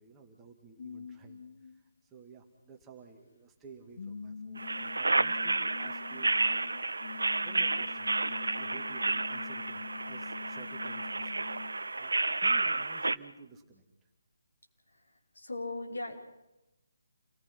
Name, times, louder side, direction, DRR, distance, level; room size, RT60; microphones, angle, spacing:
voice 1, 0.0-6.8 7.4-14.1, right 5 dB, 10° right, 1 dB, 2.2 m, -54 dB
sound 1, 0.8-1.9 2.8-2.9 3.6-3.7 4.0-11.8 12.3-12.4, left 6 dB, 45° left, 0.8 m, -46 dB
sound 2, 4.6-13.2, right 3 dB, 65° right, 0.8 m, -31 dB
voice 2, 14.9-16.1, left 2 dB, 65° left, 0 dB, 5.1 m, -39 dB
29.5 x 19.5 x 6.0 m, 0.92 s
figure-of-eight pair, 145°, 0 cm